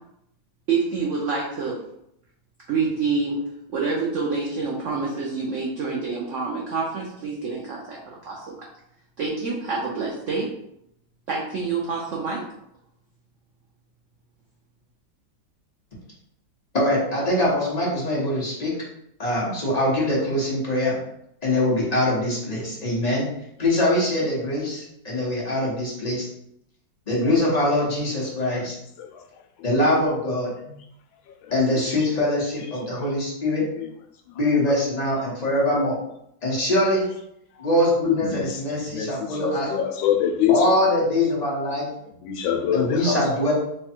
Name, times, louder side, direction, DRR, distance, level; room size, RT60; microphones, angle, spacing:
voice 1, 0.7-1.8 2.7-3.4 3.7-8.6 9.2-10.5 11.3-12.4, right 4 dB, 80° right, -3 dB, 0.6 m, -27 dB
voice 2, 16.7-18.7 19.2-21.0 21.4-23.3 23.6-26.3 27.1-28.7 29.6-30.5 31.5-33.6 34.3-36.0 36.4-37.0 37.6-39.7 40.5-41.9 42.7-43.5, left 1 dB, 25° left, -6 dB, 0.9 m, -23 dB
voice 3, 31.4-31.9 33.0-33.1 33.7-33.9 34.3-34.4 34.7-34.8 35.4-35.5 37.6-37.7 38.1-40.7 42.1-43.2, left 9 dB, 85° left, 4 dB, 1.3 m, -26 dB
3.3 x 2.3 x 4.3 m, 0.78 s
omnidirectional pair, 2.1 m